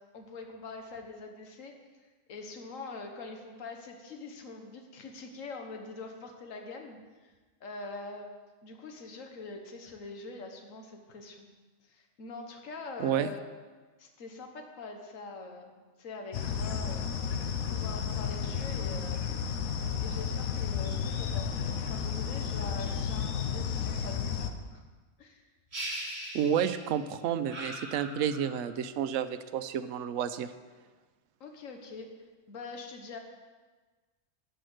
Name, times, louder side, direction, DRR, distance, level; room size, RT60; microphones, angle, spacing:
voice 1, 0.1-1.7 2.3-7.3 7.6-8.3 8.6-11.5 11.8-13.4 14.0-19.2 20.0-24.8 25.2-25.4 31.4-32.1 32.5-33.2, left 3 dB, 70° left, 3 dB, 1.6 m, -44 dB
sound 1, 16.3-24.5, left 7 dB, 85° left, 1.2 m, -32 dB
sound 2, 25.7-27.1 27.5-28.8, right 1 dB, 50° right, 2.4 m, -40 dB
voice 2, 26.3-30.5, right 9 dB, 75° right, 10 dB, 1.0 m, -30 dB
13.0 x 5.1 x 7.7 m, 1.3 s
omnidirectional pair, 1.4 m